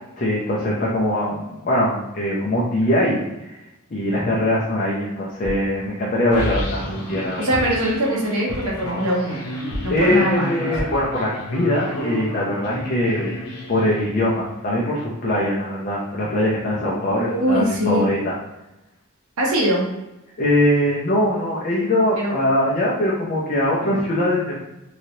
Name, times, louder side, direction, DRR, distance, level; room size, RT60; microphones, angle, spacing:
voice 1, 0.2-3.5 3.9-7.5 9.9-13.3 13.7-18.3 20.4-24.6, left 1 dB, 40° left, -5 dB, 0.6 m, -22 dB
sound 1, 5.4-5.7 6.6-6.9 7.5-7.9 8.5-8.8 9.7-10.1 10.8-11.0 11.6-11.7 12.0-12.1, equal, 5° right, 0.9 m, -31 dB
sound 2, 6.3-14.6, left 1 dB, 75° left, 0.9 m, -31 dB
voice 2, 7.4-9.4 9.8-10.5 17.2-18.1 19.4-19.9 22.1-22.3, right 1 dB, 70° right, -3 dB, 0.8 m, -22 dB
3.2 x 2.9 x 2.7 m, 0.97 s
head